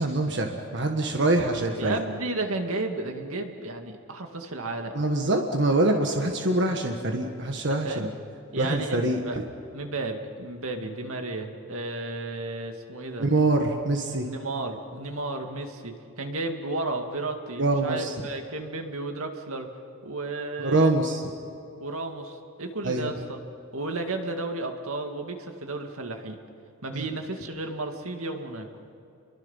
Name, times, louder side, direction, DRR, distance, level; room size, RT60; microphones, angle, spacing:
voice 1, 0.0-2.0 4.9-8.1 8.6-9.2 13.2-14.3 17.6-18.1 20.6-21.2 22.8-23.1 26.9-27.0, right 2 dB, 55° right, 3 dB, 1.5 m, -24 dB
voice 2, 1.8-4.9 7.8-8.1 8.5-9.4 9.7-13.3 14.2-19.7 20.0-20.9 21.8-23.4 23.7-26.4 26.8-28.7, right 2 dB, 80° right, 4 dB, 2.2 m, -33 dB
30.0 x 23.0 x 5.7 m, 2.6 s
head